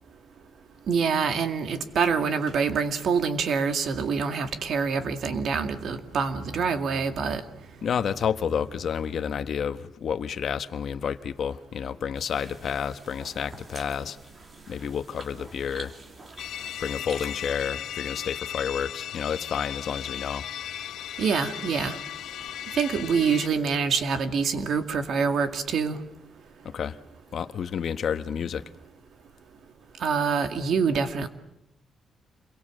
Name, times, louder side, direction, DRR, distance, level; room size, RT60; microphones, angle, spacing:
voice 1, 0.9-7.4 21.2-22.0 22.8-26.0 30.0-31.3, right 5 dB, 60° right, 8 dB, 2.2 m, -26 dB
voice 2, 7.8-14.2 14.7-15.9 16.8-20.5 26.6-27.0 27.3-28.6, left 7 dB, 55° left, 10 dB, 1.1 m, -30 dB
sound 1, 12.1-17.5, right 2 dB, 30° right, 2.8 m, -47 dB
sound 2, 16.4-23.5, left 10 dB, 90° left, 0.9 m, -36 dB
28.0 x 22.5 x 7.6 m, 0.86 s
cardioid pair, 140°, 0 cm